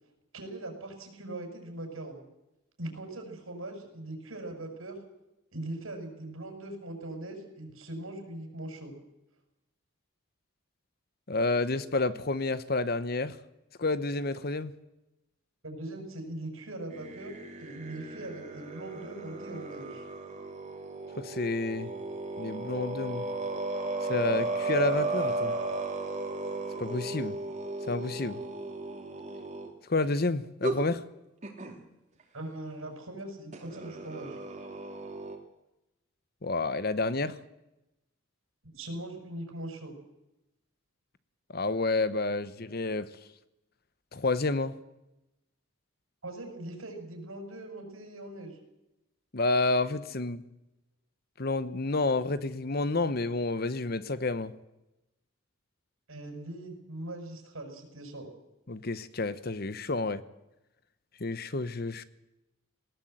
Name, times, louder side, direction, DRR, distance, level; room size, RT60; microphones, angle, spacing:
voice 1, 0.3-2.2 2.8-5.0 5.5-8.9 15.6-17.3 17.6-20.1 32.3-34.4 38.6-39.9 46.2-48.6 56.1-58.3, right 1 dB, 80° right, 4 dB, 6.0 m, -41 dB
voice 2, 11.3-13.4 13.8-14.7 21.2-21.9 22.4-23.3 24.1-25.5 26.8-27.4 27.9-28.4 29.9-31.0 36.4-37.3 41.5-43.0 44.1-44.7 49.3-50.4 51.4-54.5 58.7-60.2 61.2-62.0, left 3 dB, 45° left, 14 dB, 0.9 m, -29 dB
sound 1, 16.9-29.7 30.6-30.8 31.4-31.8 33.5-35.4, right 2 dB, 35° right, 2.9 m, -35 dB
19.5 x 18.0 x 7.9 m, 0.94 s
head